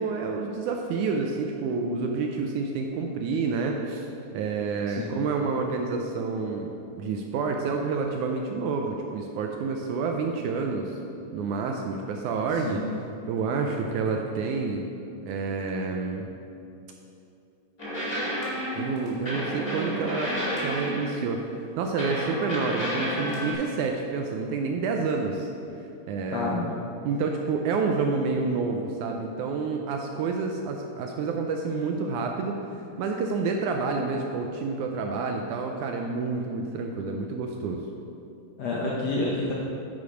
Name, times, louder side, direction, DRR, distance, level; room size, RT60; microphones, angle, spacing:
voice 1, 0.0-4.1 4.3-10.9 11.3-12.8 13.3-14.8 15.3-16.3 18.8-21.5 21.8-25.5 26.1-26.7 27.0-32.6 33.0-37.8, right 4 dB, 80° right, 2 dB, 1.7 m, -29 dB
sound 1, 17.8-21.3 22.0-23.5, equal, 25° left, 2.2 m, -30 dB
voice 2, 26.3-26.8 38.6-39.5, left 2 dB, 75° left, -4 dB, 1.5 m, -28 dB
9.5 x 6.0 x 4.9 m, 2.6 s
omnidirectional pair, 4.0 m